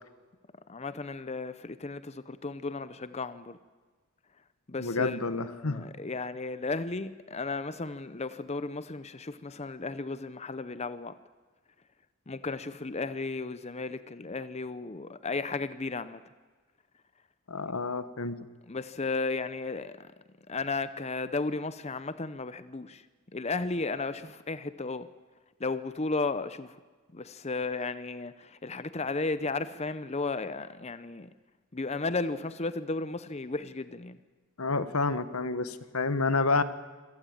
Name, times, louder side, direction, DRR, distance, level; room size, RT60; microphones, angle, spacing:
voice 1, 0.7-3.6 4.7-5.2 5.4-11.2 12.3-16.2 18.7-20.1 20.5-23.0 23.3-25.1 25.6-26.7 27.1-31.3 31.7-34.2, left 3 dB, 30° left, 0.7 m, -34 dB
voice 2, 4.8-5.8 17.5-18.4 34.6-36.6, left 3 dB, 85° left, 1.4 m, -29 dB
25.5 x 17.5 x 8.9 m
head